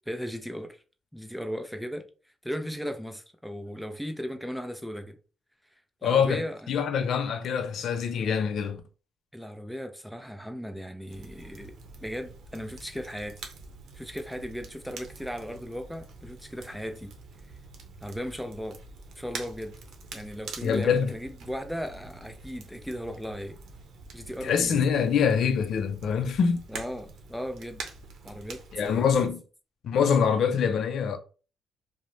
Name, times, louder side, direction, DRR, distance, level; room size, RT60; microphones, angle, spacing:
voice 1, 0.1-0.8 1.1-2.1 2.4-5.2 6.0-6.6 9.3-11.7 12.0-13.4 13.9-17.1 18.0-18.8 19.2-19.7 20.1-23.6 24.1-24.8 26.7-27.8 28.2-29.1, equal, ahead, 0.5 m, -36 dB
voice 2, 6.0-8.8 20.6-21.1 24.4-26.6 28.7-29.4 29.8-31.2, left 7 dB, 65° left, 0.4 m, -25 dB
Crackle, 11.1-29.3, right 4 dB, 70° right, 0.7 m, -46 dB
2.5 x 2.0 x 3.1 m
cardioid pair, 90°, 0 cm